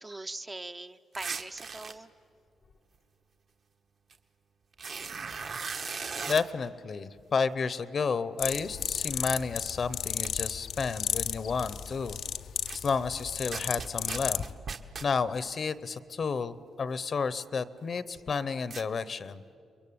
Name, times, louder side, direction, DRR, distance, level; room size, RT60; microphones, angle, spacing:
voice 1, 0.0-2.1, right 2 dB, 20° right, 8 dB, 0.7 m, -41 dB
sound 1, 1.2-1.9 4.1-4.2 4.7-6.4 9.8-9.9 10.2-10.3 12.7-12.8 13.5-15.1 18.7-18.8, right 5 dB, 50° right, 1.4 m, -37 dB
voice 2, 6.3-12.2 12.7-14.5 15.0-19.4, left 5 dB, 45° left, 16 dB, 0.8 m, -31 dB
sound 2, 8.4-14.5, left 9 dB, 70° left, 0.6 m, -34 dB
29.5 x 22.5 x 8.7 m, 2.5 s
cardioid pair, 120°, 0 cm